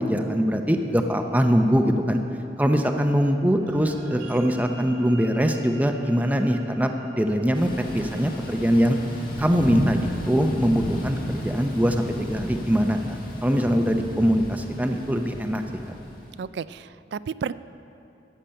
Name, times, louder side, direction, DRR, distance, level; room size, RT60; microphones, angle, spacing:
voice 1, 0.0-2.2 2.6-9.0 9.4-15.6, equal, 10° right, 5 dB, 0.7 m, -22 dB
sound 1, 3.6-14.2, equal, 90° right, 2.5 m, -46 dB
Thunder / Rain, 7.5-16.4, equal, 50° left, 1.8 m, -33 dB
voice 2, 16.4-17.5, right 6 dB, 70° right, 16 dB, 0.3 m, -32 dB
13.5 x 6.8 x 8.7 m, 2.8 s
head